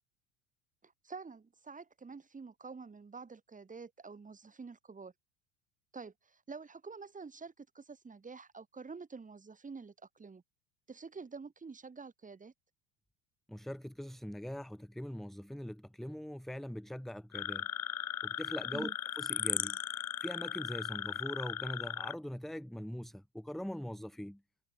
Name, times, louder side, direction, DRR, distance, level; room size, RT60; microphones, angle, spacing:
voice 1, 0.8-5.1 5.9-10.4 10.9-12.5 18.7-18.9, right 4 dB, 20° right, 6.0 m, -48 dB
voice 2, 13.5-17.7 18.2-24.4, equal, ahead, 1.5 m, -42 dB
sound 1, 17.3-22.1, left 11 dB, 90° left, 0.7 m, -37 dB
hypercardioid pair, 80°, 41 cm